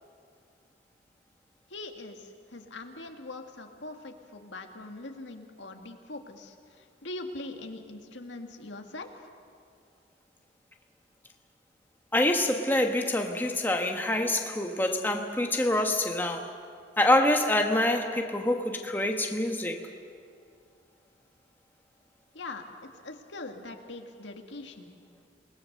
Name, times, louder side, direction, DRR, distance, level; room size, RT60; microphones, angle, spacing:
voice 1, 1.7-9.2 22.3-22.7 23.0-24.9, left 2 dB, 90° left, 4 dB, 1.9 m, -42 dB
voice 2, 12.1-16.4 17.0-19.8, left 1 dB, 10° left, 3 dB, 1.2 m, -26 dB
28.0 x 19.5 x 6.6 m, 2.3 s
head